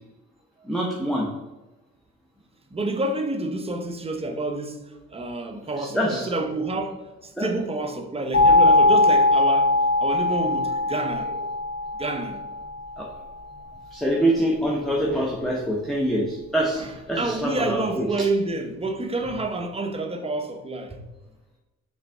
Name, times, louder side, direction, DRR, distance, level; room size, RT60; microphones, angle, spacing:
voice 1, 0.6-1.3 6.0-6.3 7.4-7.5 13.0-13.1 13.9-18.1, right 1 dB, ahead, 1.1 m, -25 dB
voice 2, 2.7-4.8 5.1-11.5 11.9-12.4 16.7-21.0, right 2 dB, 20° right, 0.9 m, -29 dB
sound 1, 8.3-13.1, left 2 dB, 50° left, 1.9 m, -20 dB
6.5 x 4.1 x 3.5 m
cardioid pair, 90°, 30 cm